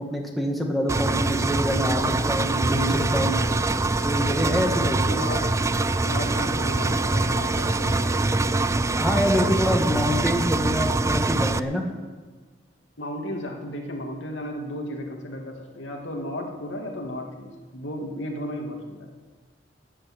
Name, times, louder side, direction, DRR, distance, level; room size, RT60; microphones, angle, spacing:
voice 1, 0.0-3.4 4.0-5.0 8.8-11.8, equal, ahead, 0 dB, 1.9 m, -26 dB
sound 1, 0.9-9.9, left 1 dB, 75° left, 2.7 m, -42 dB
Engine, 0.9-11.6, right 2 dB, 15° right, 0.4 m, -24 dB
voice 2, 4.5-5.5 6.0-8.0 13.0-19.1, left 1 dB, 90° left, 1 dB, 2.5 m, -34 dB
13.0 x 8.8 x 8.9 m, 1.4 s
head